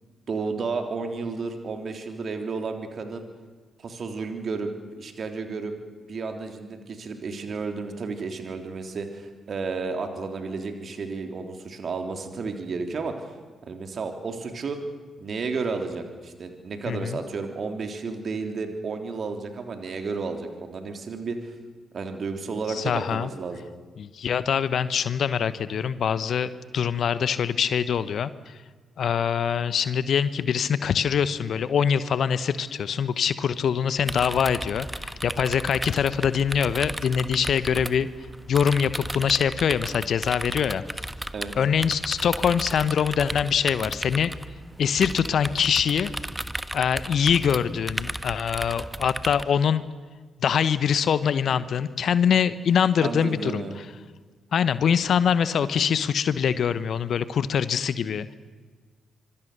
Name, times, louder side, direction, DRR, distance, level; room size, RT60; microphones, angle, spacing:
voice 1, 0.3-3.2 3.8-4.7 5.0-5.7 6.1-13.3 13.6-14.8 15.2-21.5 21.9-23.6 41.3-41.5 53.0-53.8, right 4 dB, 50° right, 5 dB, 3.4 m, -32 dB
voice 2, 16.9-17.2 22.7-23.3 24.0-28.3 29.0-38.1 38.5-40.8 41.6-44.3 44.8-46.1 46.7-49.8 50.4-53.6 54.5-58.3, left 7 dB, 60° left, 15 dB, 1.1 m, -24 dB
sound 1, 34.0-49.4, right 1 dB, 10° right, 1.3 m, -35 dB
25.5 x 24.0 x 6.8 m, 1.5 s
hypercardioid pair, 40°, 0 cm